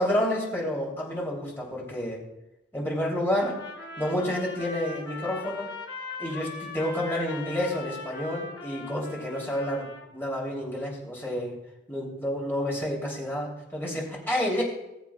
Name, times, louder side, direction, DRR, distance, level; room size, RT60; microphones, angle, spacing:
voice 1, 0.0-2.2 2.7-3.6 4.0-5.7 6.2-11.6 11.9-14.6, left 1 dB, 10° left, -3 dB, 3.0 m, -29 dB
Trumpet, 3.3-10.1, left 3 dB, 75° left, 2.5 m, -40 dB
19.5 x 7.4 x 2.3 m, 0.91 s
head